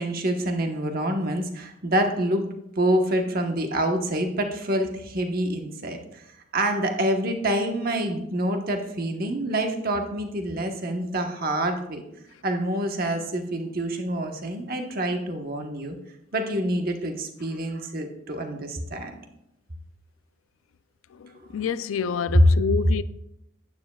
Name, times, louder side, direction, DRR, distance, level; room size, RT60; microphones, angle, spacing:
voice 1, 0.0-2.4 2.8-6.2 6.5-12.0 12.4-16.0 16.3-19.1, right 1 dB, 45° right, 1.1 m, -27 dB
voice 2, 21.1-23.0, left 7 dB, 80° left, 0.4 m, -28 dB
12.0 x 9.8 x 2.3 m
head